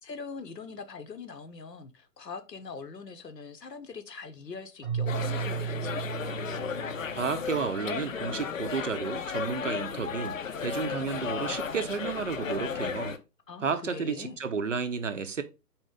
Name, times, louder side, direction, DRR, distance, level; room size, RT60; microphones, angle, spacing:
voice 1, 0.0-6.0 13.5-14.4, left 5 dB, 80° left, 0.8 m, -42 dB
Keyboard (musical), 4.8-7.9, right 7 dB, 20° right, 0.8 m, -35 dB
sound 1, 5.1-13.2, left 6 dB, 55° left, 0.5 m, -34 dB
voice 2, 7.1-13.1 13.6-15.4, right 5 dB, 50° right, 0.5 m, -32 dB
4.2 x 2.8 x 3.6 m
figure-of-eight pair, 135°, 49 cm